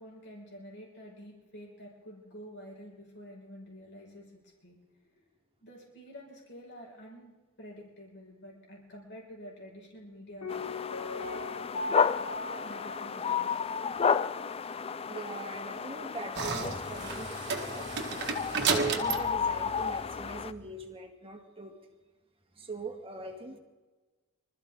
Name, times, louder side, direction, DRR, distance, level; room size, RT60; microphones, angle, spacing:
voice 1, 0.0-5.1 5.6-7.3 7.6-10.6 12.6-13.7 14.0-14.1, equal, 55° left, -1 dB, 5.3 m, -49 dB
Piano, 10.4-14.2 14.4-14.5, left 3 dB, 80° left, 1.2 m, -39 dB
sound 1, 10.5-20.5, left 6 dB, 25° left, 0.4 m, -32 dB
voice 2, 15.1-17.9 18.5-21.8 22.6-23.6, right 3 dB, 25° right, 3 dB, 2.1 m, -41 dB
sound 2, 16.3-20.6, right 5 dB, 50° right, 1.9 m, -33 dB
25.5 x 14.0 x 3.7 m, 1.2 s
head